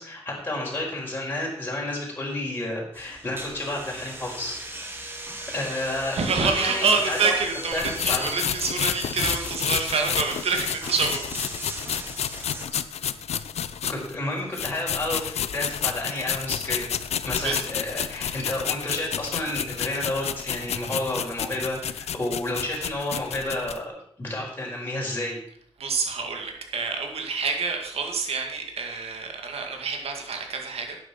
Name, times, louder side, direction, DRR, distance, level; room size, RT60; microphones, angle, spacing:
voice 1, 0.0-4.6 5.5-7.3 7.7-8.3 12.7-12.8 13.9-25.4, left 1 dB, 20° left, -3 dB, 5.0 m, -31 dB
sound 1, 2.9-12.6, right 1 dB, 20° right, 1.9 m, -37 dB
voice 2, 6.1-11.2 17.4-17.6 25.8-31.0, right 4 dB, 70° right, 3 dB, 2.3 m, -27 dB
sound 2, 7.7-14.2 14.5-23.8, left 9 dB, 85° left, 0.7 m, -30 dB
11.5 x 9.4 x 6.0 m, 0.64 s
wide cardioid pair, 145°, 11 cm